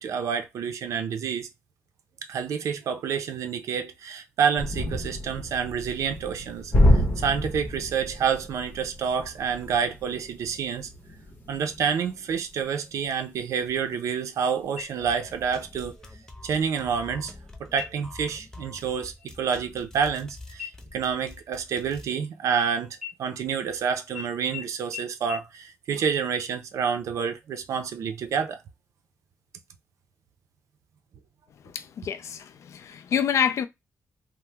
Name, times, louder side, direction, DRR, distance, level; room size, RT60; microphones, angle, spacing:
voice 1, 0.0-1.5 2.3-10.9 11.5-15.9 16.4-17.3 17.6-28.6, right 7 dB, 85° right, 0.5 m, -28 dB
sound 1, 4.6-14.3 14.6-14.8 15.2-16.0, equal, 35° left, 0.9 m, -28 dB
sound 2, 14.8-15.4 15.8-15.9 16.5-17.0 17.7-18.2 18.6-18.9 19.2-20.3 20.6-22.6 23.0-23.8 24.1-24.2 24.5-24.6 24.9-25.0 25.3-25.4, left 9 dB, 30° right, 1.2 m, -42 dB
sound 3, 15.0-22.1, left 2 dB, 10° left, 0.5 m, -46 dB
voice 2, 31.7-33.7, left 8 dB, 70° left, 0.4 m, -27 dB
2.9 x 2.0 x 3.3 m
wide cardioid pair, 155°, 5 cm